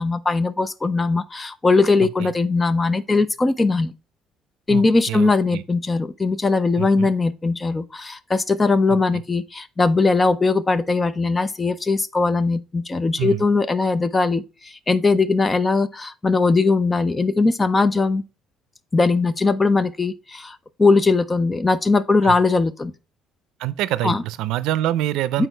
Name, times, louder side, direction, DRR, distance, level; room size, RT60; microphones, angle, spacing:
voice 1, 0.0-3.9 4.7-18.2 18.9-22.9 24.0-24.2 25.4-25.5, left 3 dB, 15° left, 0.4 m, -20 dB
voice 2, 4.7-5.6 6.8-7.1 8.9-9.2 13.2-13.5 22.2-22.4 23.6-25.5, right 14 dB, 85° right, 0.4 m, -26 dB
8.2 x 4.5 x 3.3 m
cardioid pair, 145°, 0 cm